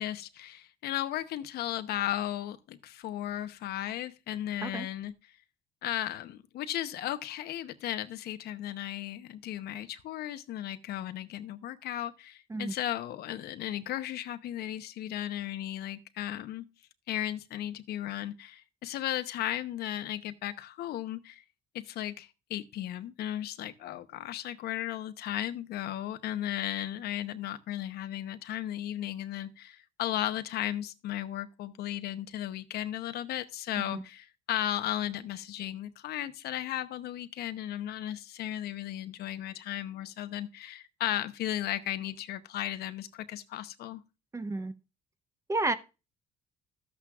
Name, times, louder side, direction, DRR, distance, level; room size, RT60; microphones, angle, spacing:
voice 1, 0.0-5.1 5.8-16.7 17.1-21.4 21.7-44.0, left 12 dB, 70° left, 0.8 m, -35 dB
voice 2, 44.3-44.7 45.5-45.7, right 2 dB, 15° right, 0.8 m, -31 dB
13.0 x 8.4 x 2.4 m
cardioid pair, 110°, 17 cm